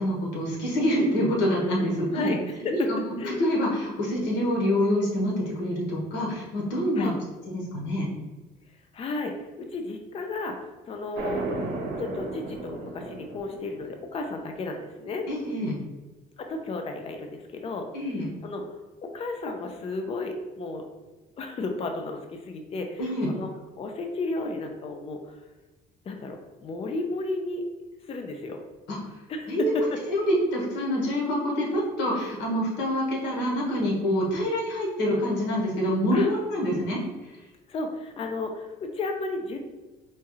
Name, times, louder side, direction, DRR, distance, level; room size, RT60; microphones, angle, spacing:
voice 1, 0.0-2.3 2.7-2.8 3.2-7.1 7.5-8.0 15.3-15.7 17.9-18.3 23.0-23.3 28.9-29.0 29.5-29.7 30.0-37.0, equal, 85° left, -3 dB, 1.2 m, -26 dB
voice 2, 2.1-2.9 3.2-3.4 7.0-7.1 8.9-11.5 12.0-15.3 16.4-17.9 18.4-18.6 19.0-20.9 21.4-23.5 23.8-25.4 26.1-27.6 28.1-28.6 29.3-30.0 32.1-32.4 36.1-36.3 37.7-39.6, left 2 dB, 35° left, 4 dB, 0.5 m, -33 dB
sound 1, 11.1-14.0, right 2 dB, 65° right, 0.8 m, -34 dB
4.3 x 2.3 x 3.0 m, 1.2 s
cardioid pair, 110°, 17 cm